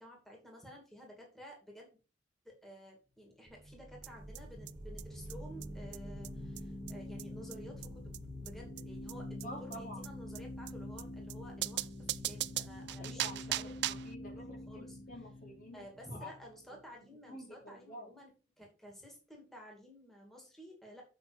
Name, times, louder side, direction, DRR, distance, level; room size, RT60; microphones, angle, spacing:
voice 1, 0.0-2.0 2.4-13.8 14.2-15.0 15.7-18.3 18.6-21.0, equal, ahead, -1 dB, 2.6 m, -53 dB
sound 1, 3.5-14.9, right 1 dB, 25° right, 1.2 m, -51 dB
sound 2, 4.0-17.1, left 1 dB, 30° left, 3.2 m, -47 dB
sound 3, 4.0-4.1 4.3-4.4 4.7-4.8 5.0-5.1 5.3-5.4 5.6-5.7 5.9-6.0 6.2-6.3 6.6-6.7 6.9-7.0 7.2-7.3 7.5-7.6 7.8-7.9 8.1-8.2 8.5-8.6 8.8-8.9 9.1-9.2 9.4-9.5 9.7-9.8 10.0-10.1 10.3-10.4 10.7-10.8 11.0-11.1 11.3-11.4 11.6-14.1, right 15 dB, 65° right, 0.4 m, -38 dB
voice 2, 9.4-10.2 12.8-16.3 17.3-18.1, equal, 50° left, 0 dB, 3.2 m, -49 dB
8.0 x 5.7 x 5.2 m, 0.34 s
head